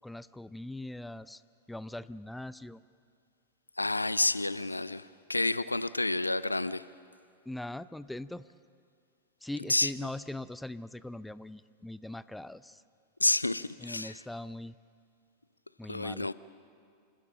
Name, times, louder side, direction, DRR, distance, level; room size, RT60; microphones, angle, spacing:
voice 1, 0.0-1.4 1.7-2.8 7.5-8.5 9.4-12.8 13.8-14.8 15.8-16.3, left 1 dB, 5° left, 17 dB, 0.4 m, -41 dB
voice 2, 3.8-6.8 9.7-9.9 13.2-14.2 15.9-16.3, left 2 dB, 85° left, 18 dB, 0.4 m, -29 dB
27.0 x 15.5 x 7.3 m, 2.3 s
figure-of-eight pair, 90°, 0 cm